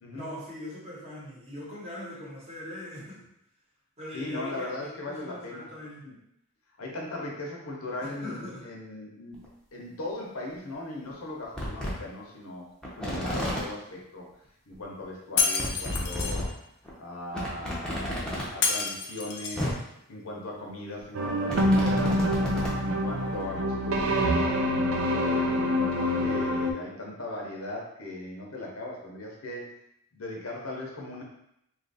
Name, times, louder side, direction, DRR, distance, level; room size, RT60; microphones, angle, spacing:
voice 1, 0.1-3.3 4.0-6.1 8.0-8.7, left 1 dB, 30° right, -6 dB, 1.0 m, -41 dB
voice 2, 4.1-5.7 6.0-6.1 6.8-9.4 9.7-12.7 12.9-14.3 14.7-16.5 17.0-19.7 20.1-22.3 22.8-24.8 25.1-29.6 30.1-31.2, left 2 dB, 70° left, -1 dB, 0.9 m, -38 dB
sound 1, 9.3-9.5 10.5-10.6 11.1-11.2 11.6-11.9 12.8-13.6 14.7-14.8 15.0-15.1 15.6-16.4 16.9-17.0 17.3-18.4 19.3-19.4 19.6-19.7 21.0-22.8 23.3-23.4, left 1 dB, 5° left, 0.7 m, -31 dB
Shatter, 15.4-16.4 18.6-19.7, left 5 dB, 55° left, 0.5 m, -28 dB
sound 2, 21.1-26.7, equal, 60° right, 0.4 m, -26 dB
2.9 x 2.5 x 4.0 m, 0.78 s
head